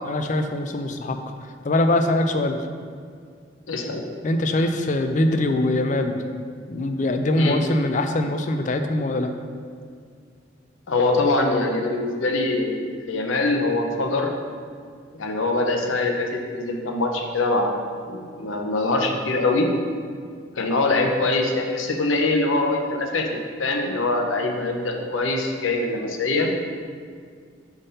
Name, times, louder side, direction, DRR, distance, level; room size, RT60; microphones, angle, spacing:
voice 1, 0.0-1.2 1.6-2.6 4.2-6.2 6.7-9.3, left 1 dB, 40° left, 6 dB, 0.4 m, -22 dB
voice 2, 3.7-4.0 7.4-7.6 10.9-14.3 15.1-17.7 18.1-19.7 20.6-23.3 23.6-26.5, left 2 dB, 85° left, 3 dB, 0.7 m, -23 dB
5.4 x 3.6 x 5.5 m, 2.1 s
head